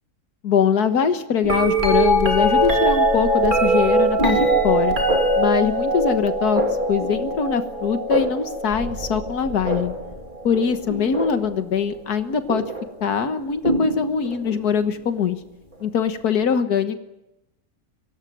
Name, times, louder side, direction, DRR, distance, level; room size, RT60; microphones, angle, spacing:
voice 1, 0.4-5.0 5.4-6.6 6.9-9.9 10.4-12.6 13.0-15.4 15.8-17.0, left 7 dB, 90° left, 9 dB, 1.8 m, -22 dB
sound 1, 1.4-11.6 12.5-12.9 13.6-14.6 16.4-16.5, right 1 dB, 30° right, 2.9 m, -22 dB
24.5 x 18.0 x 9.3 m, 0.92 s
omnidirectional pair, 1.6 m